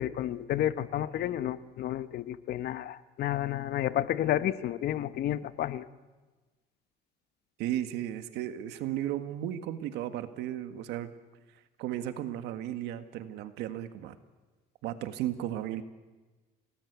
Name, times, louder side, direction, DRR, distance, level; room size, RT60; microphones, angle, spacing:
voice 1, 0.0-5.8, left 12 dB, 70° left, 14 dB, 1.1 m, -31 dB
voice 2, 7.6-11.1 11.8-14.2 14.8-15.8, right 12 dB, 90° right, 9 dB, 1.8 m, -35 dB
29.0 x 19.0 x 8.3 m, 1.2 s
cardioid pair, 110°, 17 cm